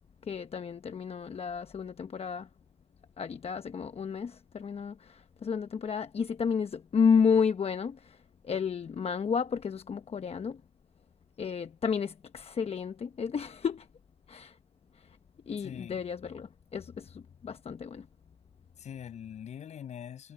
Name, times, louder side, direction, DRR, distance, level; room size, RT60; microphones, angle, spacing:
voice 1, 0.3-2.5 3.2-8.2 8.4-10.6 11.4-13.9 14.3-14.5 15.5-18.1, left 6 dB, 60° left, 0.9 m, -31 dB
voice 2, 15.6-16.0 18.8-20.3, left 9 dB, 80° left, 8.0 m, -43 dB
supercardioid pair, 45°, 12 cm